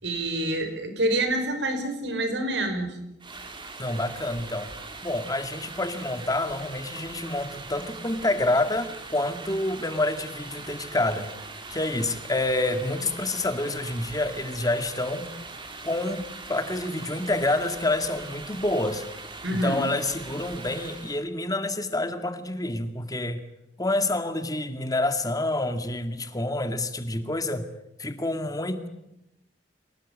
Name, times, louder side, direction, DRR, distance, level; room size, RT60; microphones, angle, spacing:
voice 1, 0.0-3.0 19.4-19.8, right 1 dB, 90° right, 7 dB, 5.4 m, -27 dB
sound 1, 3.2-21.2, right 3 dB, 30° right, 3.0 m, -41 dB
voice 2, 3.8-4.7 5.0-11.3 11.7-15.3 15.8-19.1 19.5-23.4 23.8-27.7 28.0-28.9, left 2 dB, 20° left, 8 dB, 2.1 m, -28 dB
26.0 x 18.5 x 8.5 m, 0.86 s
head